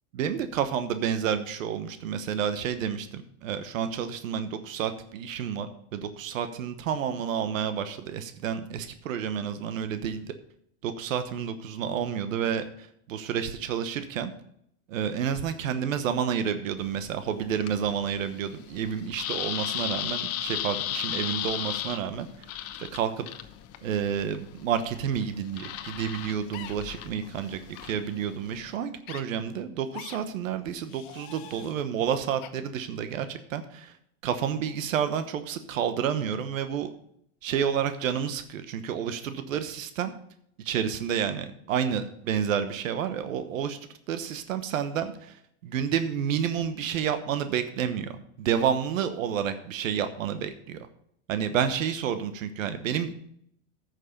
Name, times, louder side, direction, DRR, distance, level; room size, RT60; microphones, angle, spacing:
voice 1, 0.1-10.3 10.8-14.3 14.9-22.3 22.8-23.3 23.8-33.9 34.2-36.9 37.4-40.1 40.6-43.8 44.1-50.9 51.3-53.1, right 8 dB, 90° right, 10 dB, 1.1 m, -30 dB
sound 1, 16.8-28.8, left 12 dB, 40° left, 1.0 m, -36 dB
sound 2, 26.5-26.8 27.7-27.9 29.0-29.2 29.9-30.2 30.9-31.7 32.4-32.5, left 11 dB, 55° left, 1.2 m, -43 dB
9.5 x 6.5 x 6.9 m, 0.70 s
supercardioid pair, 125°, 38 cm